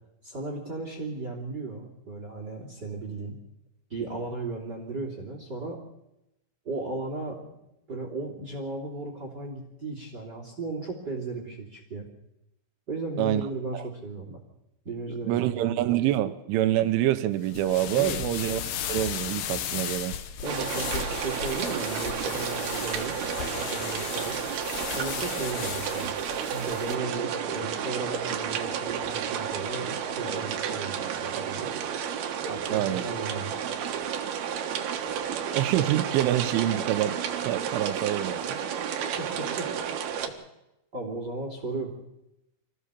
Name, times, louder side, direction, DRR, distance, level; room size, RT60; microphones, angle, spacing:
voice 1, 0.2-3.3 3.9-5.8 6.6-7.4 7.9-12.1 12.9-14.4 14.8-15.9 17.9-18.2 20.4-24.4 24.9-26.2 26.5-31.7 32.5-33.6 39.2-39.7 40.9-41.9, right 3 dB, 25° right, 2.7 m, -35 dB
voice 2, 15.2-18.6 18.9-20.2 32.7-33.0 35.5-38.6, right 13 dB, 90° right, 3.4 m, -26 dB
sound 1, 17.4-27.0, left 9 dB, 70° left, 2.2 m, -35 dB
sound 2, 20.4-40.3, right 8 dB, 65° right, 2.9 m, -32 dB
26.0 x 15.5 x 6.9 m
omnidirectional pair, 5.5 m